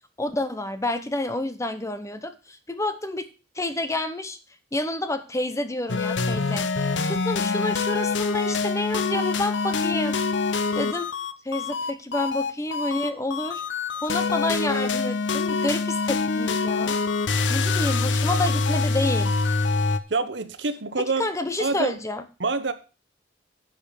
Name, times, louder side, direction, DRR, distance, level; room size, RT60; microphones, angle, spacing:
voice 1, 0.2-3.2 3.6-4.4 4.7-10.2 10.8-11.1 11.4-13.6 14.0-17.0 17.5-19.3 21.2-22.2, left 2 dB, 15° left, 11 dB, 0.9 m, -29 dB
sound 1, 5.9-20.0, left 4 dB, 80° left, 0.8 m, -25 dB
voice 2, 20.1-21.3 21.6-22.0 22.4-22.7, right 3 dB, 70° right, 12 dB, 1.0 m, -26 dB
10.5 x 5.3 x 6.7 m, 0.34 s
head